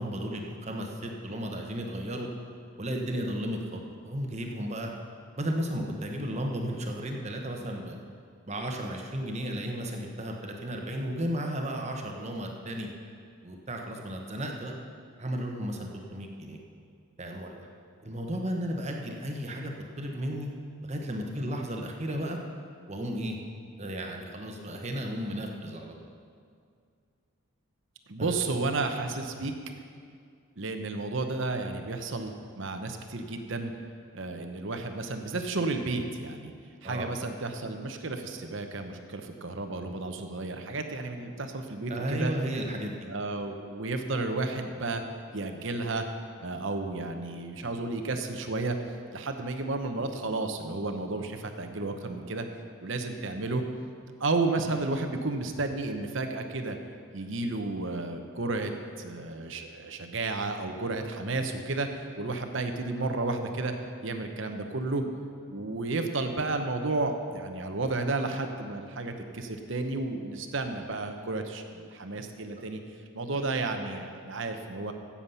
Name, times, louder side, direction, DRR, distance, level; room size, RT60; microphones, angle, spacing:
voice 1, 0.0-2.3 2.8-4.9 5.4-8.0 8.5-12.9 13.4-14.7 15.2-16.6 17.2-17.7 18.0-20.5 20.8-22.4 22.9-23.4 23.8-25.9 28.2-28.3 36.8-37.2 41.9-43.1, equal, 30° right, 2 dB, 1.1 m, -34 dB
voice 2, 28.1-29.5 30.6-33.7 34.1-36.5 36.8-42.3 43.1-45.0 45.3-46.0 46.4-48.8 49.1-52.4 52.8-53.6 54.2-56.8 57.1-58.7 59.0-61.9 62.2-63.7 64.0-65.0 65.5-72.8 73.1-74.9, right 3 dB, 60° right, 6 dB, 0.9 m, -32 dB
15.5 x 7.3 x 5.6 m, 2.2 s
head